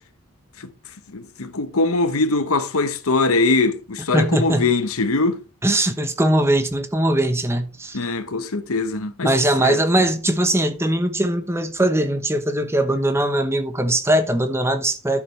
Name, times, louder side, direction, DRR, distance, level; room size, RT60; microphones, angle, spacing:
voice 1, 1.1-5.4 7.9-9.3 9.6-9.8, left 3 dB, 75° left, 1.0 m, -22 dB
voice 2, 4.1-4.7 5.6-8.0 9.2-15.2, right 1 dB, 10° right, 1.0 m, -20 dB
12.5 x 6.9 x 3.3 m
head